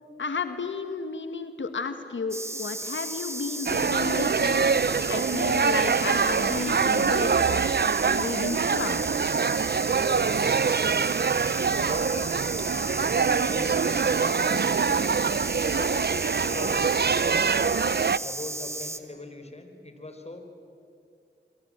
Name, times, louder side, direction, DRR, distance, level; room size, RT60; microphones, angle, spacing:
voice 1, 0.2-4.6 5.1-7.7 8.0-9.0, left 4 dB, 85° left, 9 dB, 1.5 m, -32 dB
sound 1, 2.3-19.0, right 2 dB, 15° right, 2.0 m, -35 dB
sound 2, 3.7-18.2, right 6 dB, 60° right, 0.7 m, -24 dB
voice 2, 10.0-11.1 11.6-12.5 13.0-15.0 15.5-17.8 18.2-20.4, left 2 dB, 35° left, 6 dB, 4.7 m, -41 dB
25.5 x 24.0 x 8.9 m, 2.5 s
cardioid pair, 40°, 19 cm